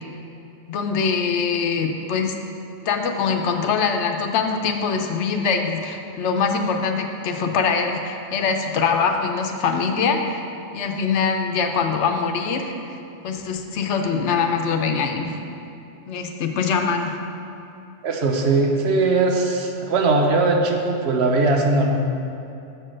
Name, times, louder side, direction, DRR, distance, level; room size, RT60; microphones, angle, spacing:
voice 1, 0.7-2.4 2.9-10.4 10.7-12.7 13.2-15.4 16.1-17.2, left 5 dB, 80° left, 5 dB, 1.0 m, -23 dB
voice 2, 18.0-22.0, right 3 dB, 70° right, 2 dB, 1.0 m, -20 dB
6.9 x 4.5 x 6.1 m, 2.7 s
omnidirectional pair, 1.2 m